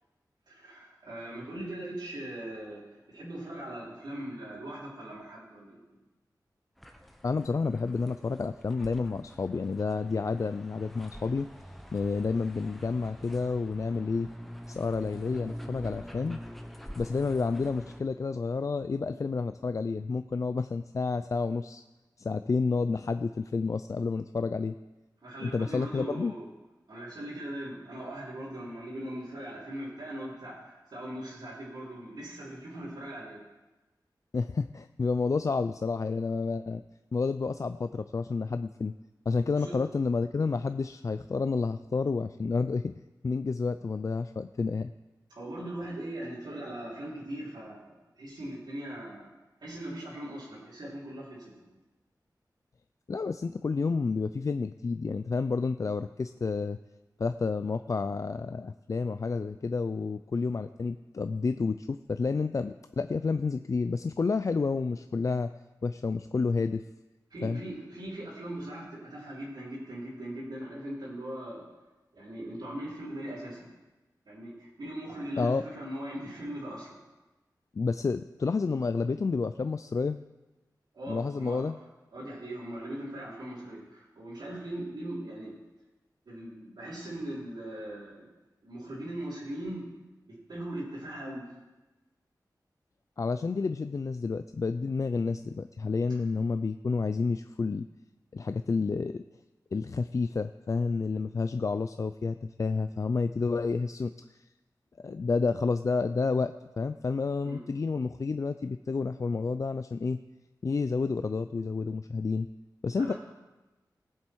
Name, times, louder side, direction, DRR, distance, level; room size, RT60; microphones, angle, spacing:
voice 1, 0.5-2.8 3.1-5.8 25.2-26.5 26.9-33.4 39.6-39.8 45.3-49.3 49.6-51.7 67.3-71.6 72.1-73.7 74.3-77.0 80.9-81.6 82.1-85.5 86.3-88.3 88.6-89.8 90.3-91.5 107.4-107.6 113.0-113.1, right 1 dB, 80° right, -10 dB, 3.9 m, -40 dB
sound 1, 6.8-18.0, equal, ahead, 1.0 m, -45 dB
voice 2, 7.2-11.5 11.9-14.3 14.7-16.4 17.0-21.8 22.2-24.7 25.4-26.3 34.3-36.8 37.1-38.9 39.3-43.0 43.2-44.9 53.1-56.8 57.2-65.5 65.8-66.8 67.4-67.6 75.4-75.6 77.8-80.2 81.1-81.8 93.2-97.9 98.3-99.2 99.7-104.1 105.0-110.2 110.6-112.5 112.8-113.1, left 4 dB, 45° left, 10 dB, 0.4 m, -30 dB
18.5 x 7.5 x 4.7 m, 1.1 s
wide cardioid pair, 95°, 7 cm